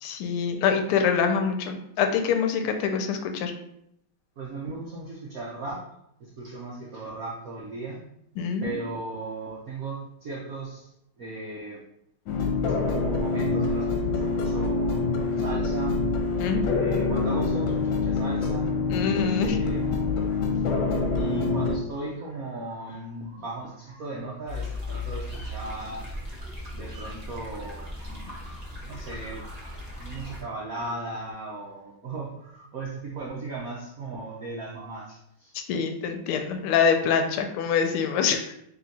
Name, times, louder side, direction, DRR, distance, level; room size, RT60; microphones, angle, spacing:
voice 1, 0.0-3.5 8.4-8.9 16.4-16.7 18.9-19.6 35.5-38.5, left 6 dB, 85° left, 6 dB, 1.5 m, -25 dB
voice 2, 4.4-5.8 6.2-8.0 8.6-11.8 12.7-15.0 15.4-16.0 16.8-18.7 19.4-20.3 21.1-26.1 26.7-35.5, right 3 dB, 75° right, -3 dB, 0.8 m, -37 dB
sound 1, 12.3-21.8, left 4 dB, 70° left, 1.4 m, -26 dB
sound 2, 24.5-30.4, left 2 dB, 40° right, 0.5 m, -37 dB
3.8 x 2.8 x 4.1 m, 0.75 s
omnidirectional pair, 2.4 m